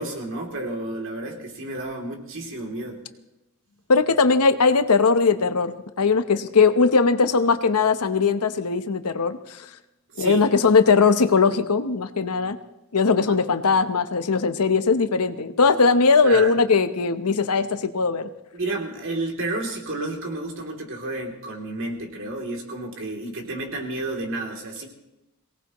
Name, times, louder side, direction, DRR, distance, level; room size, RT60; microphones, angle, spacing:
voice 1, 0.0-3.0 10.2-10.4 13.3-13.4 16.2-16.5 18.5-24.9, right 2 dB, 60° right, 1 dB, 2.9 m, -31 dB
voice 2, 3.9-9.6 10.2-12.6 12.9-18.3, left 4 dB, 90° left, 10 dB, 0.9 m, -20 dB
23.0 x 18.0 x 3.1 m, 0.94 s
head